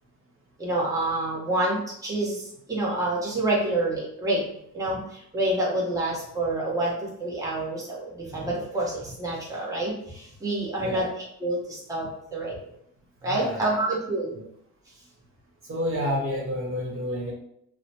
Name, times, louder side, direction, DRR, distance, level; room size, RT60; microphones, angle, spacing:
voice 1, 0.6-12.6 13.2-14.3, right 1 dB, 10° right, -5 dB, 1.0 m, -28 dB
voice 2, 13.2-13.8 14.3-14.4 15.6-17.3, equal, 45° right, -2 dB, 1.2 m, -29 dB
3.0 x 2.1 x 4.1 m, 0.72 s
cardioid pair, 90°, 30 cm